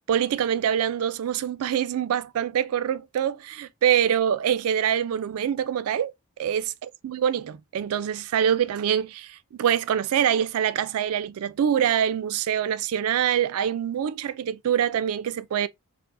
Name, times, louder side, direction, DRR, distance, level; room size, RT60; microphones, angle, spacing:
voice 1, 0.1-6.1 6.4-6.6 7.0-15.7, right 9 dB, 80° right, 0.3 m, -25 dB
4.5 x 2.0 x 2.5 m
head